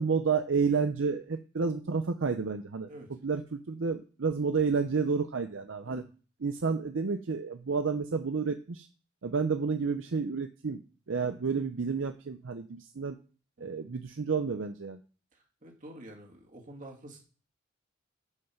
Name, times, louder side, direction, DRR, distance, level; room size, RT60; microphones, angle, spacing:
voice 1, 0.0-6.0 6.4-8.9 9.2-10.8 11.1-13.2 13.6-15.0, right 5 dB, 65° right, 8 dB, 0.6 m, -30 dB
voice 2, 15.6-17.2, right 1 dB, 40° right, 0 dB, 2.3 m, -48 dB
9.5 x 5.5 x 5.8 m, 0.37 s
head